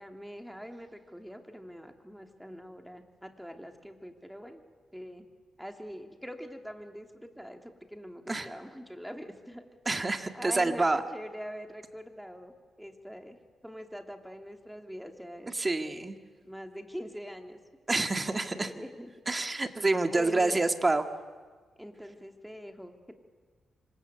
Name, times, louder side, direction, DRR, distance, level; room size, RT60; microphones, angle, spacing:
voice 1, 0.0-4.6 4.9-5.3 5.6-9.6 10.3-12.5 12.8-13.4 13.6-16.1 16.4-17.6 18.3-19.1 20.0-20.6 21.8-23.1, equal, ahead, 5 dB, 2.7 m, -43 dB
voice 2, 9.9-11.0 15.5-16.2 17.9-18.7 19.3-21.0, right 2 dB, 25° right, 7 dB, 1.9 m, -27 dB
27.0 x 25.0 x 8.1 m, 1.5 s
cardioid pair, 90°, 0 cm